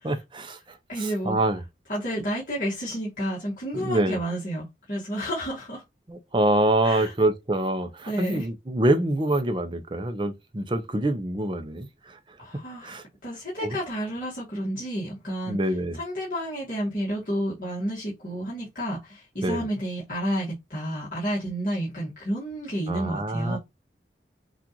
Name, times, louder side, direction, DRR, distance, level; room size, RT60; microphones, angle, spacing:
voice 1, 0.0-0.6 1.0-1.6 3.7-4.2 6.1-11.9 12.8-13.0 13.6-13.8 15.5-16.0 19.4-19.6 22.9-23.6, right 1 dB, 25° right, 0.6 m, -25 dB
voice 2, 0.9-1.4 1.9-5.8 6.8-7.1 8.1-8.5 12.4-23.6, equal, 45° left, 1.6 m, -31 dB
6.0 x 2.5 x 2.9 m
head